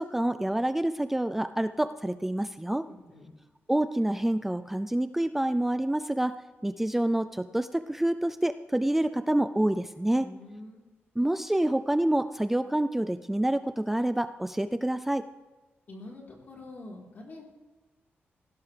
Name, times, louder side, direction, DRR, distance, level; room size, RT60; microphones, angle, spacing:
voice 1, 0.0-2.9 3.7-6.4 6.6-10.3 11.2-15.3, right 1 dB, 5° right, 10 dB, 0.3 m, -27 dB
voice 2, 2.9-3.3 10.2-10.8 15.9-17.4, left 2 dB, 50° left, -2 dB, 3.8 m, -45 dB
19.5 x 16.5 x 3.4 m, 1.2 s
wide cardioid pair, 150°, 4 cm